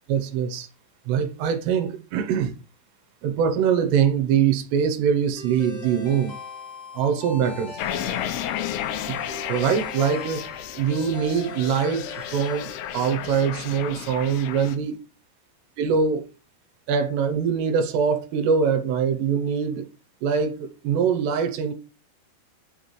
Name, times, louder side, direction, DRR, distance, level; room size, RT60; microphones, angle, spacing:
voice 1, 0.1-0.7 1.1-2.5 3.2-6.3 6.9-7.8 9.1-9.2 9.5-10.5 10.7-15.0 15.8-16.2 16.9-19.9 20.2-21.7, right 7 dB, 80° right, 2.8 m, -23 dB
sound 1, 5.4-13.5, left 4 dB, 35° left, 1.2 m, -39 dB
sound 2, 7.8-14.8, left 11 dB, 80° left, 2.4 m, -33 dB
8.7 x 4.0 x 3.1 m
omnidirectional pair, 5.1 m